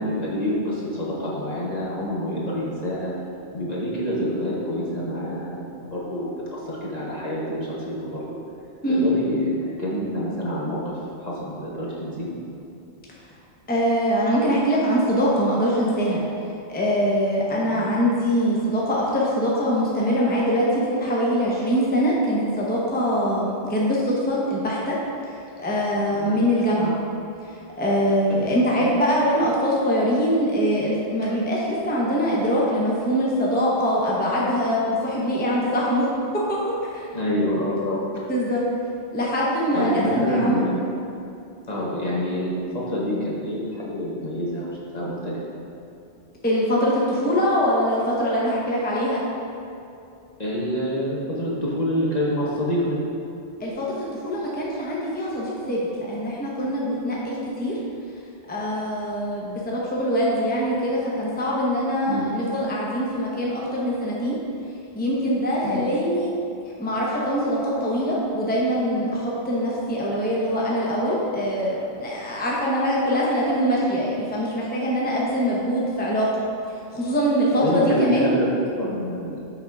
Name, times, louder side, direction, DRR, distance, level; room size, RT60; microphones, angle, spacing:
voice 1, 0.0-3.1 3.5-8.2 8.9-12.5 17.6-18.0 26.1-26.5 28.7-28.9 31.2-31.3 37.1-38.0 39.7-40.8 41.7-45.4 50.4-53.0 62.1-62.3 65.6-65.8 77.5-79.4, equal, 40° left, -6 dB, 1.0 m, -27 dB
voice 2, 13.7-16.2 16.7-25.0 25.3-26.9 27.8-36.1 36.5-36.6 36.8-37.1 38.3-38.6 39.1-40.6 46.4-49.2 53.6-57.8 58.5-64.4 64.9-66.3 66.8-76.4 76.9-78.4, equal, 10° left, -5 dB, 0.8 m, -23 dB
6.8 x 3.7 x 4.6 m, 2.7 s
omnidirectional pair, 1.2 m